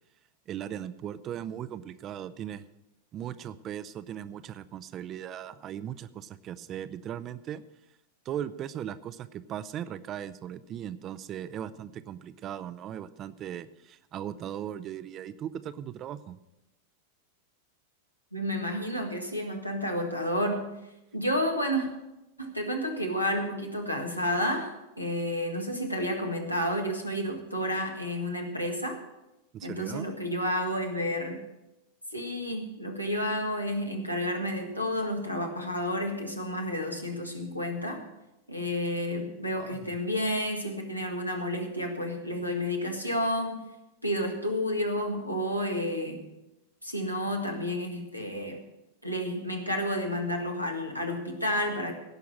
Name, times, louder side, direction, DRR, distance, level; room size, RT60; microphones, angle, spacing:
voice 1, 0.5-2.6 3.1-7.6 8.2-16.4 29.5-30.1 39.6-40.0, right 10 dB, 30° right, 14 dB, 0.6 m, -38 dB
voice 2, 18.3-20.7 21.1-21.9 22.4-29.0 29.6-31.4 32.1-38.0 38.5-43.6 44.0-46.2 46.8-48.6 49.0-51.9, equal, 90° left, 2 dB, 1.8 m, -30 dB
17.0 x 5.8 x 7.5 m, 0.93 s
figure-of-eight pair, 90°, 0 cm